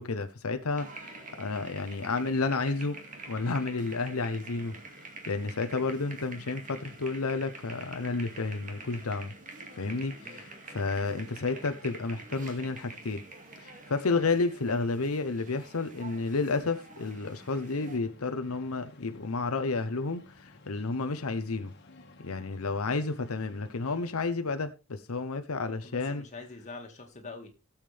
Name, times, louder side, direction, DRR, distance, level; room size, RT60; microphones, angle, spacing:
voice 1, 0.0-3.0 3.3-4.7 5.3-9.3 9.8-13.2 13.6-21.7 22.2-26.2, left 3 dB, 90° left, 0.8 m, -31 dB
sound 1, 0.8-18.0, right 3 dB, 40° right, 2.2 m, -47 dB
sound 2, 17.0-24.1, left 2 dB, 55° left, 1.7 m, -55 dB
voice 2, 25.6-27.5, left 3 dB, 35° left, 2.1 m, -45 dB
17.5 x 7.3 x 3.4 m
head